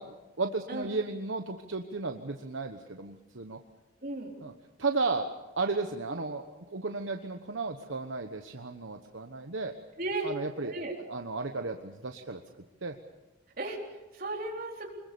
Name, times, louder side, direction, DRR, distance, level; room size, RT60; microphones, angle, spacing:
voice 1, 0.0-3.6 4.4-4.5 4.8-5.3 5.6-9.7 10.2-10.8 11.0-12.4 12.8-13.0, right 3 dB, 70° right, 5 dB, 1.2 m, -34 dB
voice 2, 4.0-4.3 6.2-6.3 10.0-10.3 10.6-10.9 13.6-14.9, right 2 dB, 45° right, 0 dB, 4.0 m, -35 dB
25.5 x 21.5 x 7.0 m, 1.1 s
head